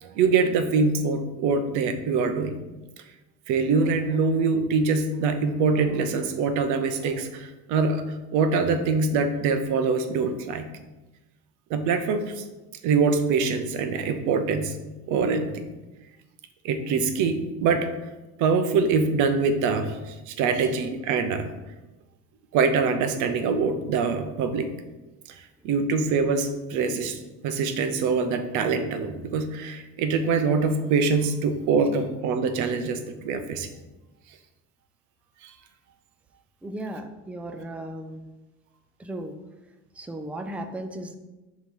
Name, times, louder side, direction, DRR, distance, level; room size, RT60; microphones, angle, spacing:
voice 1, 0.0-2.6 3.5-8.1 8.3-10.7 11.7-12.4 12.8-14.8 15.1-15.7 16.6-17.9 18.4-21.5 22.5-24.7 25.6-33.7 35.4-35.5, right 4 dB, 80° right, 9 dB, 0.8 m, -24 dB
voice 2, 36.6-38.2 39.0-39.4 40.0-41.2, right 1 dB, 5° right, 6 dB, 0.3 m, -35 dB
7.2 x 3.2 x 5.4 m, 1.1 s
cardioid pair, 150°, 30 cm